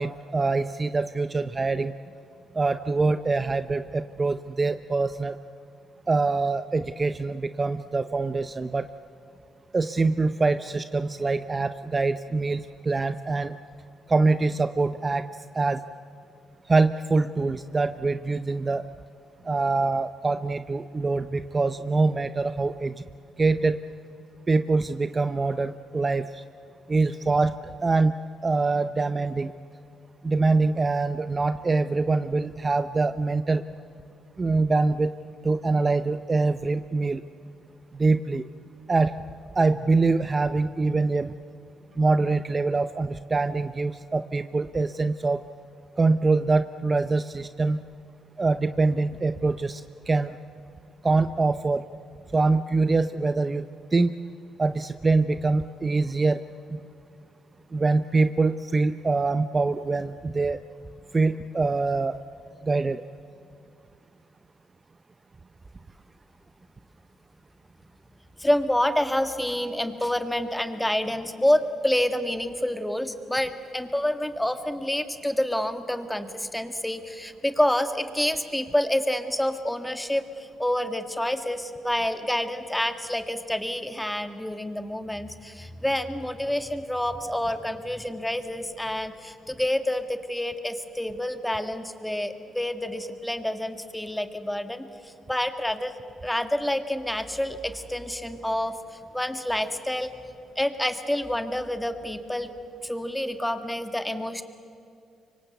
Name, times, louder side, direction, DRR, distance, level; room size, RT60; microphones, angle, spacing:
voice 1, 0.0-1.9 2.5-5.4 6.1-8.9 9.7-13.5 14.1-15.3 15.5-15.8 16.7-18.8 19.5-22.9 23.4-23.8 24.5-26.4 26.9-28.1 28.4-29.5 30.2-33.6 34.4-35.1 35.4-37.2 37.9-38.4 38.9-39.1 39.6-41.3 42.0-45.4 46.0-47.8 48.4-50.3 51.0-51.8 52.3-53.6 53.9-54.1 54.6-56.4 57.7-60.6 61.1-62.2 62.6-63.0, right 3 dB, 25° right, 11 dB, 0.7 m, -24 dB
voice 2, 68.4-95.9 96.2-98.8 99.1-100.1 100.6-102.5 102.8-104.4, left 1 dB, 5° left, 8 dB, 1.8 m, -28 dB
25.5 x 24.0 x 8.2 m, 2.5 s
cardioid pair, 90°, 0 cm